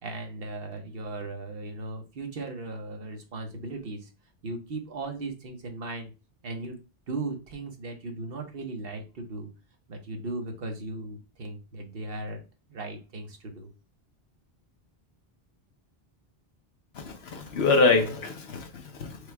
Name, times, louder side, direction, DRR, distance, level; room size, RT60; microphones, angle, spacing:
voice 1, 0.0-4.1 4.4-6.1 6.4-6.8 7.1-9.5 9.9-12.4 12.7-13.7, right 2 dB, 65° right, 1.2 m, -37 dB
voice 2, 16.9-19.2, left 3 dB, 80° left, 1.2 m, -25 dB
4.9 x 2.3 x 4.6 m
omnidirectional pair, 1.0 m